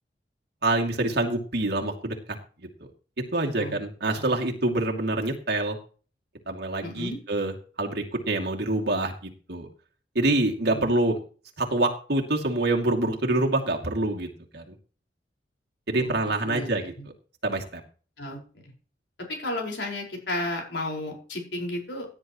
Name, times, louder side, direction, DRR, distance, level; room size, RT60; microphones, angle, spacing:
voice 1, 0.6-2.2 2.6-2.9 3.3-5.8 6.5-9.7 10.1-11.2 11.6-14.3 14.5-14.7 15.9-16.9 17.4-17.8, right 2 dB, 65° right, 1 dB, 2.5 m, -26 dB
voice 2, 6.8-7.2 10.6-10.9 15.9-16.1 16.4-16.7 17.0-17.1 18.2-18.7 19.3-22.1, left 1 dB, 75° left, 1 dB, 5.0 m, -33 dB
17.0 x 10.0 x 3.1 m, 0.39 s
head